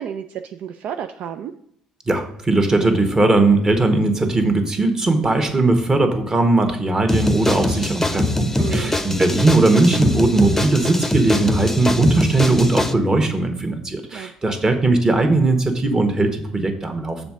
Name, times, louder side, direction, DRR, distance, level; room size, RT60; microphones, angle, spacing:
voice 1, 0.0-1.5 8.5-9.0 14.1-14.3, right 9 dB, 60° right, 7 dB, 0.3 m, -31 dB
voice 2, 2.1-17.2, right 2 dB, 25° right, 6 dB, 1.3 m, -18 dB
sound 1, 7.1-12.9, left 1 dB, 10° left, 0.7 m, -23 dB
6.9 x 3.6 x 6.2 m, 0.69 s
hypercardioid pair, 55°, 3 cm